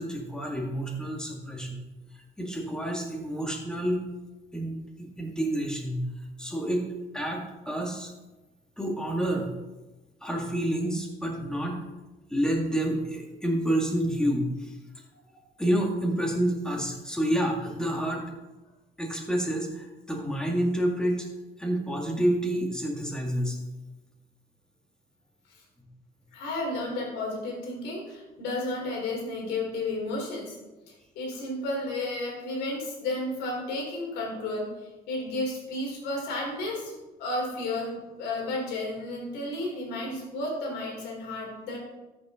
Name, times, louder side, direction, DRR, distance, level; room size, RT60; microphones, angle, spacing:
voice 1, 0.0-1.8 2.4-4.0 4.5-6.0 6.4-6.9 7.1-8.1 8.8-9.5 10.2-11.8 12.3-14.8 15.6-18.2 19.0-21.3 21.6-23.6, right 1 dB, 5° left, 0 dB, 2.0 m, -28 dB
voice 2, 26.3-30.6 30.9-36.9 37.2-41.8, left 2 dB, 85° left, -1 dB, 3.7 m, -32 dB
13.5 x 7.3 x 3.7 m, 1.1 s
cardioid pair, 110°, 17 cm